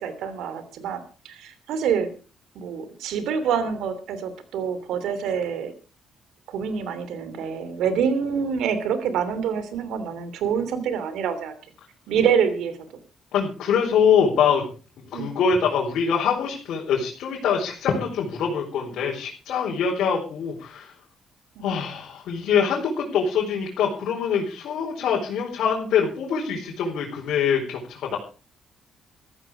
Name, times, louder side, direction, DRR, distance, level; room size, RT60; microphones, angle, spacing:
voice 1, 0.0-2.1 2.5-5.7 6.5-11.5 12.1-12.8 15.1-15.3 21.5-21.8, right 7 dB, 85° right, 12 dB, 2.9 m, -26 dB
voice 2, 13.3-14.6 15.1-20.9 21.6-28.2, left 6 dB, 75° left, -2 dB, 4.5 m, -24 dB
14.5 x 14.0 x 5.0 m, 0.37 s
cardioid pair, 90°, 0 cm